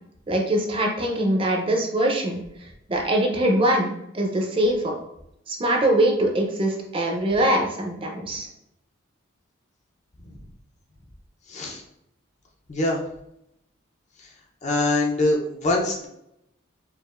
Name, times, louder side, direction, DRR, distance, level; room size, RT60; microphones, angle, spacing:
voice 1, 0.3-2.4 2.9-4.9 5.5-8.5, right 1 dB, 25° right, 1 dB, 0.5 m, -22 dB
voice 2, 11.5-11.8 12.7-13.0 14.6-16.1, left 2 dB, 35° left, 0 dB, 0.6 m, -23 dB
4.7 x 2.5 x 2.4 m, 0.80 s
head